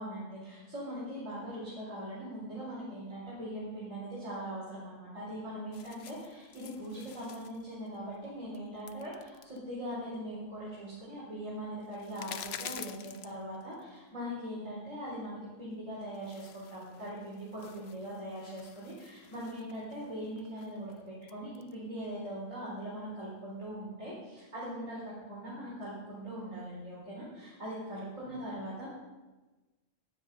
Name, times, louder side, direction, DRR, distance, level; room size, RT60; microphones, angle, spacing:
voice 1, 0.0-28.9, equal, 80° right, -8 dB, 4.9 m, -41 dB
sound 1, 5.7-13.9 14.2-14.3 15.7-15.8 16.1-21.7, left 9 dB, 60° left, 0.8 m, -50 dB
15.0 x 10.0 x 5.4 m, 1.2 s
omnidirectional pair, 1.3 m